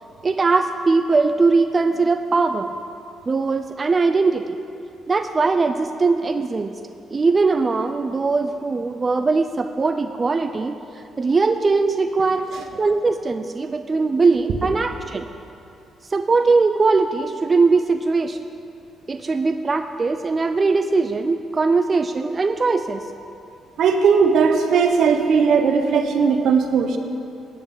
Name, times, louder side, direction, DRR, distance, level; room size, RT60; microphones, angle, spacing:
voice 1, 0.2-2.7 3.3-4.6 5.1-6.7 7.1-10.7 11.2-12.5 12.8-15.2 16.1-18.4 19.1-23.0 24.4-24.6, right 4 dB, 30° right, 7 dB, 0.4 m, -20 dB
voice 2, 23.8-27.0, right 5 dB, 70° right, 6 dB, 1.0 m, -17 dB
16.0 x 9.4 x 3.9 m, 2.6 s
cardioid pair, 90°, 0 cm